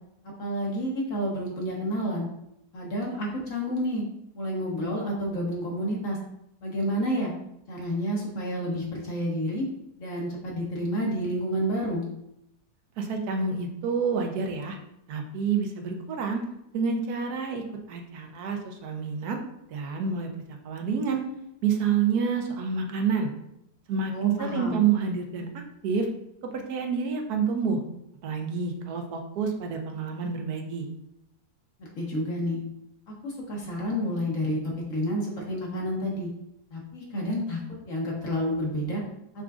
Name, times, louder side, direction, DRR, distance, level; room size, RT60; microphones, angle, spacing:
voice 1, 0.4-2.3 2.7-4.0 4.3-6.2 6.6-7.3 7.7-9.7 10.0-12.1 24.1-24.8 31.8-32.6 33.1-36.3 36.7-37.6 37.9-39.0, equal, 55° left, -2 dB, 1.3 m, -29 dB
voice 2, 13.0-14.8 15.1-16.4 16.7-19.4 19.7-20.3 20.6-21.2 21.6-23.3 23.9-26.1 26.5-27.8 28.2-30.9, right 6 dB, 75° right, 3 dB, 1.2 m, -28 dB
5.8 x 3.7 x 2.4 m, 0.79 s
omnidirectional pair, 1.7 m